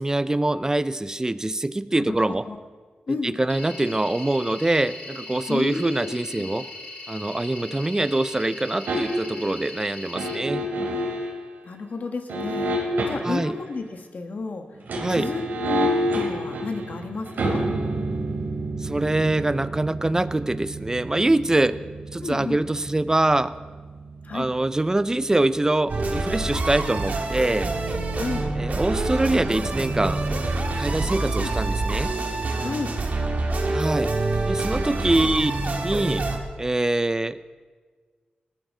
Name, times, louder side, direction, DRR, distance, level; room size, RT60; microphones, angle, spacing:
voice 1, 0.0-2.4 3.1-6.7 7.1-10.6 13.2-13.5 15.0-15.3 18.8-21.8 22.1-23.5 24.3-27.7 28.6-30.3 30.8-32.1 33.7-34.1 34.5-35.5 35.8-36.3 36.6-37.4, right 2 dB, 20° right, 15 dB, 0.6 m, -24 dB
voice 2, 1.9-2.6 3.1-3.3 5.5-6.5 11.6-12.7 13.0-14.7 15.1-17.7 22.2-22.6 24.2-24.5 28.1-28.5 31.3-31.5 32.6-32.9 35.1-35.3, left 3 dB, 65° left, 5 dB, 1.6 m, -32 dB
sound 1, 3.5-10.4, left 2 dB, 80° left, 4.5 m, -39 dB
sound 2, 8.9-9.4 10.1-11.3 12.3-13.5 14.7-25.7 26.0-26.1, right 1 dB, 85° right, 2.8 m, -29 dB
sound 3, 25.9-36.4, right 2 dB, 60° right, 2.0 m, -26 dB
19.0 x 13.0 x 3.9 m, 1.5 s
cardioid pair, 65°, 3 cm